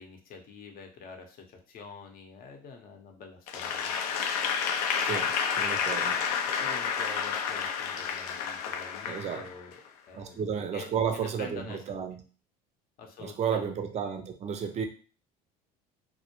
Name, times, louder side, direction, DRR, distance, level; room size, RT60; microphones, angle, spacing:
voice 1, 0.0-3.9 6.0-6.2 6.5-9.7 10.1-10.4 10.7-12.0 13.0-13.7, left 4 dB, 50° left, 3 dB, 0.7 m, -46 dB
Applause / Crowd, 3.5-9.9, left 7 dB, 85° left, 0.4 m, -30 dB
voice 2, 5.0-6.2 9.1-9.5 10.1-12.2 13.2-14.8, right 7 dB, 35° right, 6 dB, 0.5 m, -32 dB
2.1 x 2.1 x 2.9 m, 0.38 s
hypercardioid pair, 80°, 19 cm